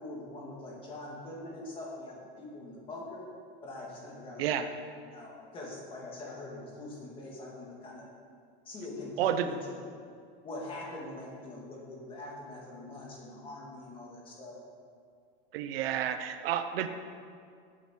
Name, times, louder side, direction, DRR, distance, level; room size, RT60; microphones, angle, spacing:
voice 1, 0.0-3.2 3.6-4.7 5.1-8.1 8.7-9.8 10.4-14.6, left 2 dB, 15° left, -3 dB, 2.4 m, -43 dB
voice 2, 15.5-16.9, right 10 dB, 80° right, 9 dB, 0.9 m, -30 dB
16.0 x 9.1 x 4.6 m, 2.2 s
supercardioid pair, 175°, 29 cm